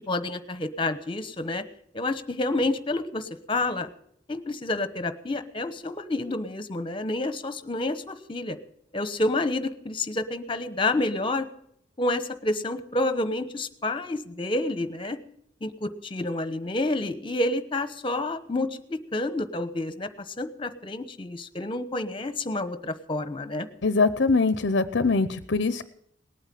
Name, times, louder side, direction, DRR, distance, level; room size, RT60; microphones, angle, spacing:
voice 1, 0.1-1.6 1.9-3.9 4.3-8.6 8.9-11.5 12.0-15.2 15.6-23.7, left 2 dB, 25° left, 11 dB, 1.0 m, -29 dB
voice 2, 23.8-25.8, left 3 dB, 60° left, 13 dB, 0.7 m, -23 dB
19.0 x 9.1 x 7.6 m, 0.70 s
head